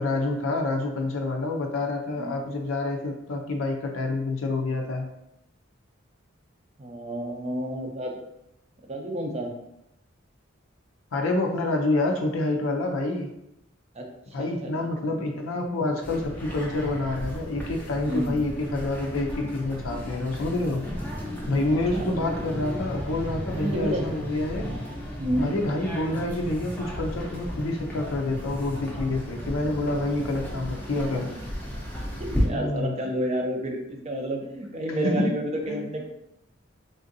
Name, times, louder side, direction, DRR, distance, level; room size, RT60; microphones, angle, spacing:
voice 1, 0.0-5.1 11.1-13.3 14.3-20.8 21.5-24.7 25.4-31.3 32.5-32.9 35.0-35.3 35.7-35.8, left 2 dB, 75° left, 2 dB, 0.5 m, -27 dB
voice 2, 6.8-8.2 8.9-9.5 13.9-14.1 14.4-15.1 18.1-18.5 21.9-22.1 23.6-24.1 25.2-25.5 31.1-31.3 32.2-36.1, equal, 30° right, 1 dB, 0.5 m, -30 dB
sound 1, 16.0-32.5, equal, 10° left, 0.6 m, -34 dB
3.4 x 2.6 x 2.6 m, 0.82 s
head